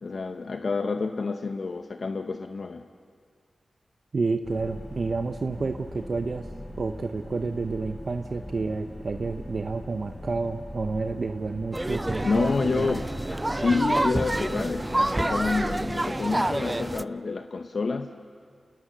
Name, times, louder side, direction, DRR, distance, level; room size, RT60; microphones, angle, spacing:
voice 1, 0.0-2.9 12.2-13.1 13.5-18.1, left 4 dB, 65° left, 7 dB, 0.7 m, -28 dB
voice 2, 4.1-6.5 6.8-13.0, right 4 dB, 60° right, 7 dB, 0.8 m, -30 dB
sound 1, 4.4-15.9, left 1 dB, 30° left, 4.2 m, -41 dB
sound 2, 11.7-17.0, right 1 dB, 20° right, 0.5 m, -28 dB
sound 3, 11.9-17.1, right 2 dB, 80° right, 2.9 m, -46 dB
27.5 x 20.0 x 6.7 m, 2.3 s
cardioid pair, 45°, 0 cm